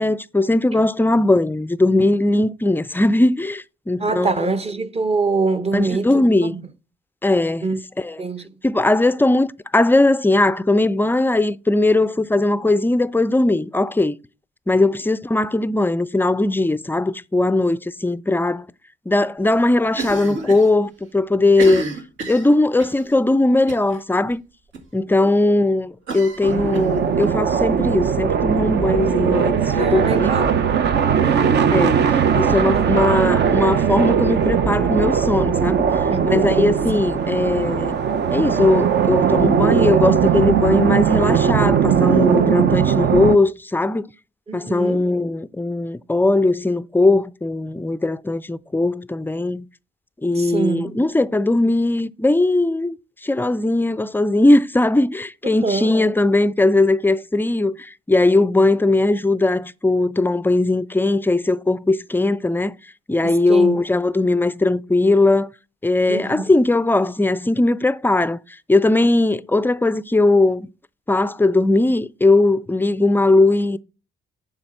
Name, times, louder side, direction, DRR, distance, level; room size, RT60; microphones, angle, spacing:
voice 1, 0.0-4.3 5.7-6.6 7.2-8.2 8.6-9.5 9.7-14.1 14.7-18.7 19.1-21.8 22.3-24.4 24.9-30.4 31.7-32.0 32.3-35.8 36.2-38.0 38.3-44.1 44.5-49.6 50.2-53.0 53.2-62.7 63.1-65.5 65.8-68.4 68.7-70.7 71.1-73.8, left 2 dB, 10° left, 0.3 m, -19 dB
voice 2, 4.0-6.6 7.6-7.8 8.2-8.5 25.2-25.3 29.8-30.6 31.2-31.7 32.7-32.9 36.1-36.2 44.5-45.0 50.3-50.9 55.6-55.9 63.2-63.8 66.1-66.4, right 3 dB, 30° right, 0.9 m, -24 dB
Cough, 19.9-20.7 21.0-21.1 21.5-23.0 23.7-24.0 24.3-24.4 24.7-24.8 26.1-27.3, right 2 dB, 80° right, 1.9 m, -30 dB
sound 1, 26.4-43.4, right 7 dB, 60° right, 0.8 m, -19 dB
7.2 x 4.9 x 6.6 m
cardioid pair, 90°, 20 cm